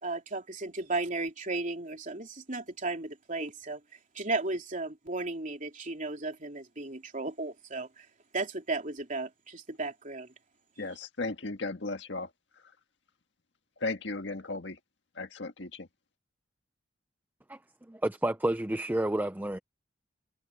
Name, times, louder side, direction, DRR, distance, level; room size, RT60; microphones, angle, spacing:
voice 1, 0.0-3.8 4.1-8.0 8.3-10.3, right 3 dB, 45° right, 3.4 m, -35 dB
voice 2, 10.8-12.3 13.8-14.8 15.1-15.9, left 3 dB, 70° left, 1.8 m, -35 dB
voice 3, 17.9-19.6, right 1 dB, 10° right, 0.6 m, -30 dB
head